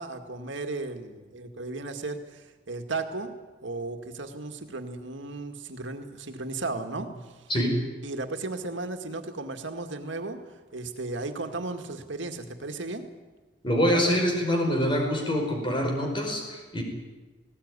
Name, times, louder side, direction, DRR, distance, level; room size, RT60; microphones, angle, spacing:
voice 1, 0.0-3.3 3.6-7.1 7.4-7.5 8.0-10.4 10.7-13.1, right 3 dB, 85° right, 6 dB, 2.0 m, -35 dB
voice 2, 7.5-7.8 13.6-16.8, equal, 25° left, 2 dB, 5.0 m, -25 dB
19.0 x 17.5 x 9.7 m, 1.3 s
head